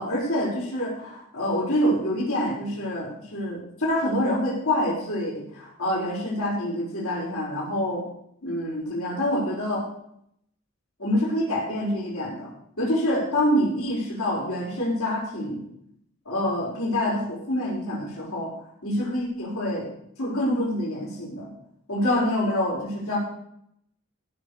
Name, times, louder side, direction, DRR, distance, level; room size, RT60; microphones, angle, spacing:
voice 1, 0.0-8.0 8.4-9.9 11.0-12.5 12.8-15.6 16.3-18.5 18.8-19.9 20.2-21.5 21.9-23.2, left 1 dB, 75° left, -3 dB, 5.6 m, -26 dB
15.5 x 7.0 x 6.6 m, 0.72 s
head